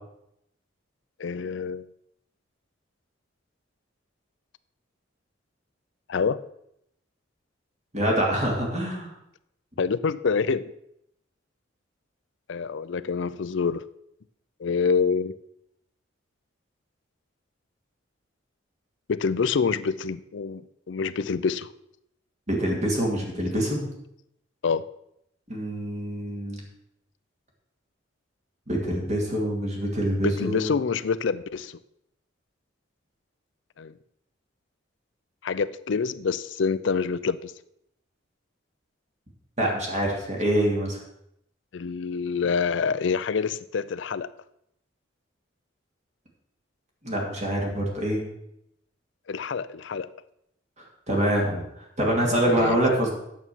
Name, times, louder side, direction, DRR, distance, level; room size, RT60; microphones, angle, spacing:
voice 1, 1.2-1.9 6.1-6.4 9.8-10.7 12.5-13.9 14.6-15.3 19.1-21.7 24.6-24.9 30.2-31.8 33.8-33.9 35.4-37.5 41.7-44.3 49.3-50.1 52.4-52.8, left 5 dB, 65° left, 16 dB, 0.5 m, -26 dB
voice 2, 7.9-9.1 22.5-23.9 25.5-26.6 28.7-30.7 39.6-41.0 47.0-48.2 50.8-53.1, right 1 dB, 35° right, 0 dB, 2.6 m, -25 dB
9.1 x 7.1 x 6.2 m, 0.77 s
head